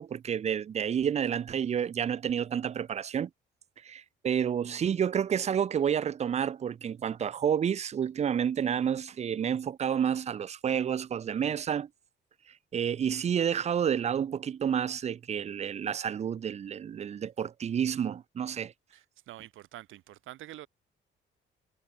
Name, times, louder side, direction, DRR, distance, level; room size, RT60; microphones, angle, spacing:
voice 1, 0.0-3.3 3.8-11.9 12.7-18.7, right 8 dB, 35° right, 0.4 m, -30 dB
voice 2, 18.9-20.7, right 14 dB, 85° right, 6.3 m, -47 dB
cardioid pair, 90°, 20 cm